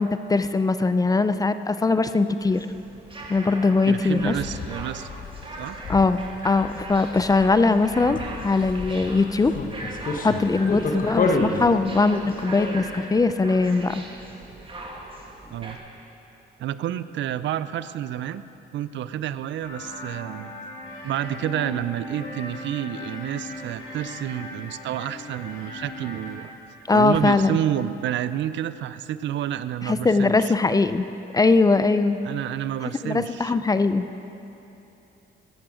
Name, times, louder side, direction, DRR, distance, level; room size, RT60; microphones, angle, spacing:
voice 1, 0.0-2.7 3.3-4.3 5.9-9.5 10.2-14.0 26.9-27.6 29.8-31.1 31.3-32.2 33.0-34.1, left 3 dB, 20° left, 11 dB, 0.4 m, -21 dB
sound 1, 2.4-15.8, right 2 dB, 25° right, 1.7 m, -40 dB
voice 2, 3.9-5.1 5.6-5.8 15.5-15.8 16.6-18.4 18.7-20.5 21.0-26.5 26.9-30.5 32.2-33.5, right 11 dB, 70° right, 14 dB, 0.4 m, -29 dB
sound 2, 4.1-13.1, left 3 dB, 45° left, 1.0 m, -31 dB
sound 3, 19.6-26.3, left 2 dB, 85° left, 3.3 m, -38 dB
14.5 x 8.9 x 5.0 m, 2.9 s
cardioid pair, 90°, 20 cm